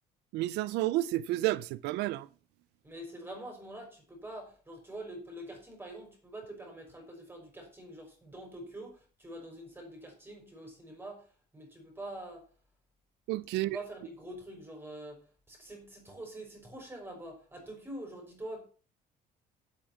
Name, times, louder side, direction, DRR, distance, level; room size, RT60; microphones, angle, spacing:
voice 1, 0.3-2.3 13.3-13.8, right 16 dB, 90° right, 0.5 m, -31 dB
voice 2, 2.8-12.5 13.5-18.6, right 1 dB, 15° right, 5.7 m, -45 dB
8.8 x 8.3 x 7.2 m
cardioid pair, 110°, 17 cm